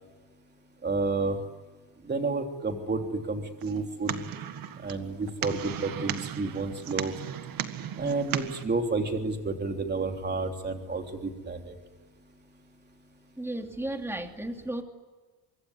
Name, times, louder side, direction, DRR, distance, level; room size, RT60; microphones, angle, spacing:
voice 1, 0.8-1.4 2.1-4.2 4.8-7.1 8.0-11.7, right 3 dB, 25° right, 4 dB, 3.3 m, -30 dB
sound 1, 3.6-8.6, right 9 dB, 50° right, 1.9 m, -36 dB
voice 2, 13.4-14.8, right 1 dB, 5° right, 4 dB, 2.8 m, -34 dB
24.5 x 24.5 x 9.7 m, 1.3 s
cardioid pair, 145°, 43 cm